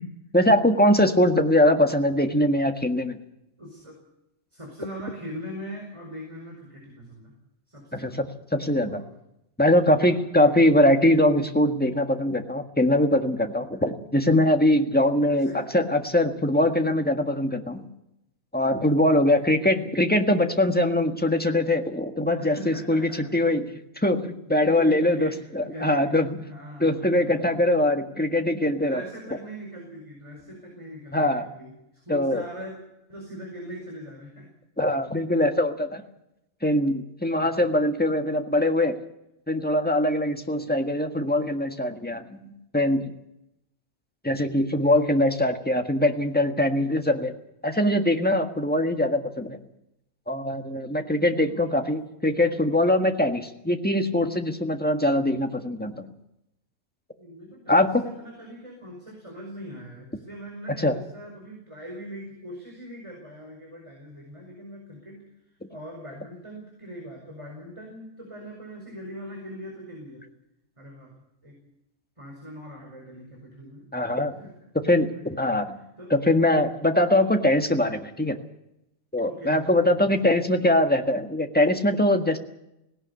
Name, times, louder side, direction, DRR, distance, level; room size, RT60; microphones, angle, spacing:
voice 1, 0.3-3.2 7.9-9.0 9.6-17.9 18.5-23.7 24.0-26.4 26.8-29.0 31.1-31.5 32.1-32.4 34.8-36.0 36.6-39.0 39.5-43.2 44.2-47.3 47.6-49.6 50.3-56.0 57.7-58.0 60.7-60.9 65.6-65.7 73.9-74.4 74.7-75.8 76.1-78.4 79.1-82.4, left 1 dB, 5° left, 5 dB, 1.5 m, -22 dB
voice 2, 3.6-4.0 4.5-7.3 7.7-8.2 8.8-9.1 10.0-10.6 15.2-15.7 19.2-19.9 22.4-23.4 24.6-27.7 28.8-32.8 33.1-34.5 37.4-37.7 40.6-40.7 51.4-51.8 57.2-70.3 70.8-71.1 71.4-71.6 72.2-73.9 74.4-74.5 75.1-76.1 77.1-77.3 79.2-80.3, equal, 20° right, 0 dB, 5.2 m, -41 dB
18.0 x 18.0 x 8.3 m, 0.85 s
omnidirectional pair, 1.4 m